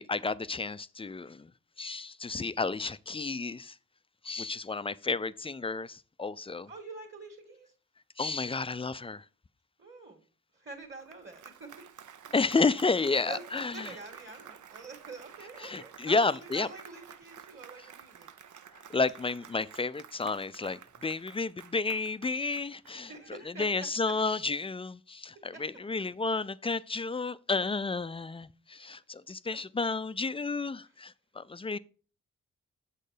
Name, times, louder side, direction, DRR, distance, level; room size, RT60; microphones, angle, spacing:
voice 1, 0.0-1.5 1.8-3.7 4.2-6.7 8.2-9.2 12.3-13.9 15.6-16.7 18.9-23.1 23.6-31.8, left 3 dB, 20° left, 0.4 m, -31 dB
voice 2, 6.7-7.7 9.8-10.2 10.5-11.7 12.2-12.3 13.2-18.6 22.9-23.7 24.0-24.1 25.4-25.9, right 3 dB, 35° right, 1.9 m, -46 dB
Applause, 10.8-23.4, right 8 dB, 65° right, 0.7 m, -51 dB
7.4 x 4.4 x 5.0 m
cardioid pair, 50°, 32 cm